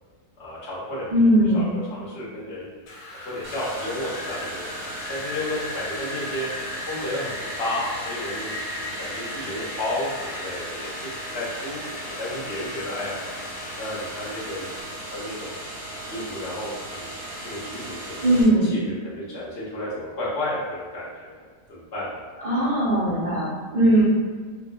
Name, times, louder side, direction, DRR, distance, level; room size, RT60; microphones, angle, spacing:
voice 1, 0.4-1.1 1.4-2.7 3.1-6.5 6.9-11.1 11.3-13.1 13.8-14.7 15.1-15.6 16.1-17.2 17.4-18.3 18.6-21.4 21.7-22.2, left 1 dB, 45° left, -8 dB, 0.9 m, -32 dB
voice 2, 1.1-1.7 18.2-18.7 22.4-24.0, right 1 dB, 85° right, -12 dB, 0.3 m, -19 dB
Wind, 2.9-14.8, left 1 dB, 85° left, 1.4 m, -37 dB
sound 1, 3.4-18.4, right 1 dB, 20° right, 0.7 m, -37 dB
2.7 x 2.6 x 2.2 m, 1.5 s
omnidirectional pair, 1.8 m